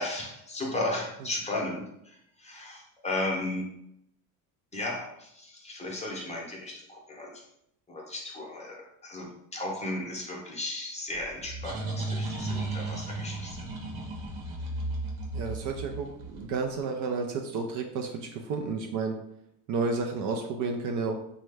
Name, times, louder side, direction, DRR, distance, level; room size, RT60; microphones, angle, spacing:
voice 1, 0.0-3.7 4.7-7.3 7.9-13.6, left 2 dB, 15° left, -2 dB, 0.7 m, -35 dB
sound 1, 11.1-16.7, right 2 dB, 80° right, 1.0 m, -35 dB
voice 2, 15.3-19.2 19.7-21.1, right 4 dB, 50° right, 3 dB, 0.4 m, -31 dB
3.0 x 2.2 x 3.3 m, 0.78 s
cardioid pair, 125°, 40 cm